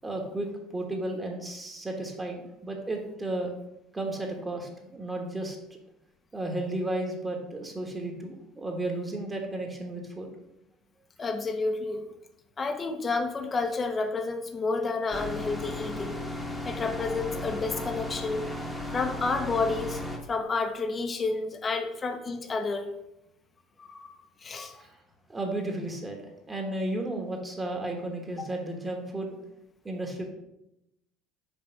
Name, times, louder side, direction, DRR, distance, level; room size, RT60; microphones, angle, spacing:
voice 1, 0.0-3.5 3.9-5.6 6.3-10.3 24.7-25.0 25.3-29.3 29.8-30.3, right 1 dB, 15° right, 2 dB, 1.2 m, -33 dB
voice 2, 11.2-12.0 12.6-16.2 16.6-18.4 18.9-20.0 20.3-22.9 23.8-24.1 24.4-24.8, left 3 dB, 30° left, 6 dB, 0.7 m, -30 dB
sound 1, 15.1-20.2, left 1 dB, 10° left, 1.0 m, -35 dB
5.5 x 3.3 x 5.7 m, 0.86 s
supercardioid pair, 110°, 0 cm